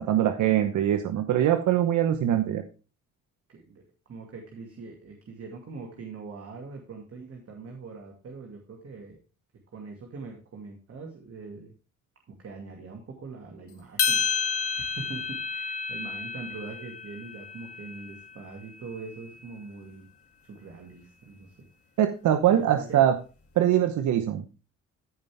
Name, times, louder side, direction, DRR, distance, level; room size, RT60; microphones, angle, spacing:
voice 1, 0.0-2.6 22.0-23.1 23.6-24.4, right 11 dB, 75° right, 7 dB, 0.9 m, -23 dB
voice 2, 3.5-9.2 9.7-11.7 12.4-14.3 14.8-20.1 20.4-21.5 22.4-23.0, right 4 dB, 50° right, 1 dB, 2.4 m, -42 dB
sound 1, 14.0-18.4, left 5 dB, 50° left, 2.3 m, -30 dB
15.0 x 5.5 x 3.5 m, 0.34 s
cardioid pair, 90°, 30 cm